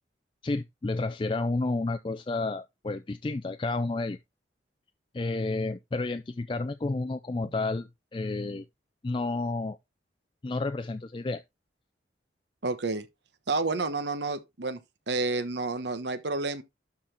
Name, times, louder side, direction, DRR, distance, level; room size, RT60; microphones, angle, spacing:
voice 1, 0.4-4.2 5.1-8.6 9.0-9.8 10.4-11.4, left 3 dB, 25° left, 0.4 m, -31 dB
voice 2, 12.6-13.1 13.5-14.8 15.1-16.6, right 3 dB, 75° right, 1.1 m, -30 dB
12.0 x 4.0 x 4.3 m
head